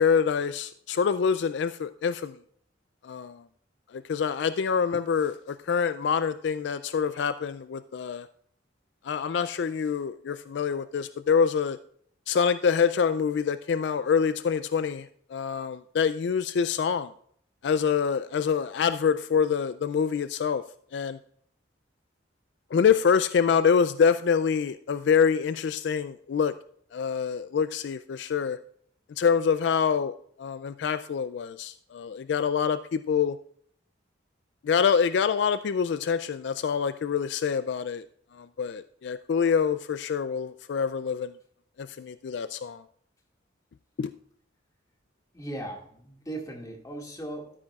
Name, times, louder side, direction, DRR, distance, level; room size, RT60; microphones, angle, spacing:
voice 1, 0.0-2.4 3.0-3.4 3.9-8.3 9.0-11.8 12.3-17.1 17.6-20.6 20.9-21.2 22.7-26.5 26.9-28.6 29.2-33.4 34.6-38.0 38.3-41.3 41.8-42.8 44.0-44.1, left 6 dB, 65° left, 13 dB, 0.3 m, -26 dB
voice 2, 45.3-47.5, right 1 dB, 20° left, 1 dB, 2.0 m, -38 dB
13.0 x 9.8 x 2.4 m, 0.64 s
head